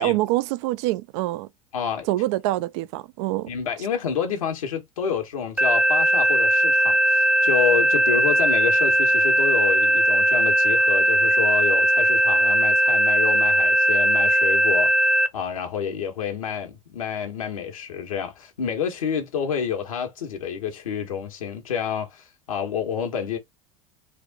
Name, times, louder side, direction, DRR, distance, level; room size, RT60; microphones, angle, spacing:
voice 1, 0.0-1.5 2.1-3.5, right 17 dB, 60° right, 0.4 m, -25 dB
voice 2, 1.7-2.1 3.5-23.4, left 7 dB, 85° left, 1.2 m, -28 dB
sound 1, 5.6-15.3, equal, 10° right, 0.6 m, -19 dB
3.3 x 2.5 x 3.5 m
hypercardioid pair, 85°, 17 cm